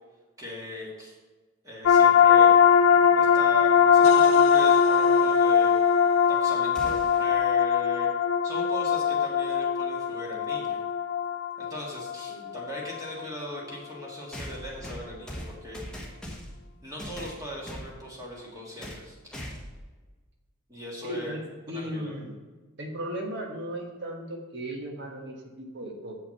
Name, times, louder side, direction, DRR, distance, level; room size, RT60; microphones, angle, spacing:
voice 1, 0.4-1.1 1.6-2.5 3.1-5.7 6.3-8.1 8.4-10.8 11.6-15.8 16.8-19.3 20.7-21.4 21.7-22.1, equal, 15° right, -3 dB, 1.6 m, -39 dB
sound 1, 1.9-13.2, left 7 dB, 60° left, 0.4 m, -21 dB
sound 2, 6.7-7.3 9.4-9.5 10.6-10.7 14.3-16.6 17.0-17.9 18.8-19.1 19.3-19.8, equal, 5° left, 1.1 m, -40 dB
voice 2, 12.3-12.6 21.0-22.4 22.8-26.1, equal, 50° right, 2 dB, 1.4 m, -36 dB
7.3 x 5.7 x 5.8 m, 1.3 s
head